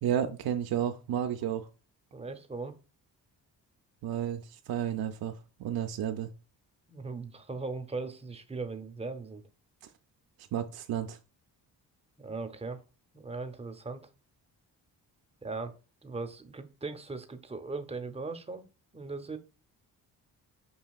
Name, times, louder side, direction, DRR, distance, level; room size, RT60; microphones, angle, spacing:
voice 1, 0.0-1.7 4.0-6.3 10.5-11.2, right 10 dB, 55° right, 0.5 m, -32 dB
voice 2, 2.1-2.8 6.9-9.4 12.2-12.8 13.1-14.0 15.4-15.7 16.0-18.6 18.9-19.4, right 3 dB, 15° right, 0.6 m, -38 dB
5.4 x 2.8 x 2.3 m
supercardioid pair, 50°, 46 cm